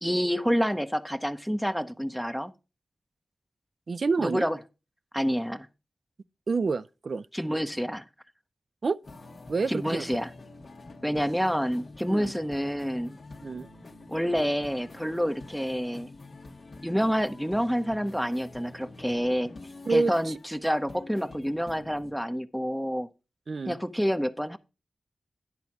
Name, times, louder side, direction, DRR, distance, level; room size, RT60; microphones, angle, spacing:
voice 1, 0.0-2.5 4.2-4.6 5.1-5.7 7.3-8.0 9.7-10.3 11.0-13.2 14.1-16.1 16.8-19.5 19.9-23.1 23.7-24.6, equal, ahead, 0.8 m, -28 dB
voice 2, 3.9-4.5 6.5-7.3 8.8-9.0 9.5-10.0 12.0-12.3 13.4-13.7 19.9-20.1 23.5-23.8, right 4 dB, 60° right, 0.4 m, -28 dB
sound 1, 9.0-22.2, left 2 dB, 60° left, 1.3 m, -47 dB
10.5 x 4.0 x 6.0 m
cardioid pair, 50°, 0 cm